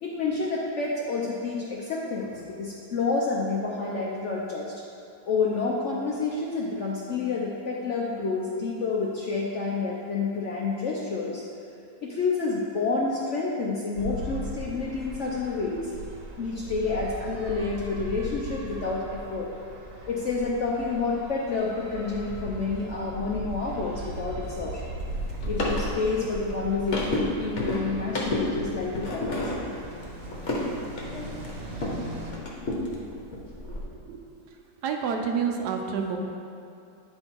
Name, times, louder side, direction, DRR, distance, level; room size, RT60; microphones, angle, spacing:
voice 1, 0.0-4.7 5.3-11.4 12.0-15.9 16.4-19.5 20.1-24.9 25.5-29.7, left 4 dB, 65° left, -4 dB, 0.7 m, -29 dB
sound 1, 13.9-32.3, right 1 dB, 55° right, 1.2 m, -38 dB
sound 2, 25.0-32.0 32.3-33.8, left 1 dB, 50° left, 1.2 m, -32 dB
voice 2, 33.7-34.2 34.8-36.2, right 6 dB, 75° right, 3 dB, 1.1 m, -29 dB
8.8 x 3.7 x 4.5 m, 2.5 s
omnidirectional pair, 1.9 m